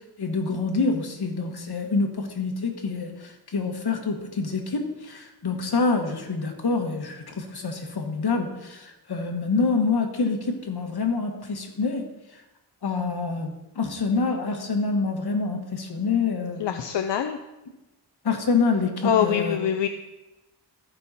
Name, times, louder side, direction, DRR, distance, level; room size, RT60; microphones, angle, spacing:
voice 1, 0.0-12.1 12.8-16.8 18.2-19.6, left 4 dB, 65° left, 4 dB, 1.5 m, -26 dB
voice 2, 16.6-17.4 19.0-19.9, left 9 dB, 85° left, 7 dB, 0.6 m, -24 dB
14.0 x 5.7 x 4.1 m, 1.0 s
wide cardioid pair, 85°, 41 cm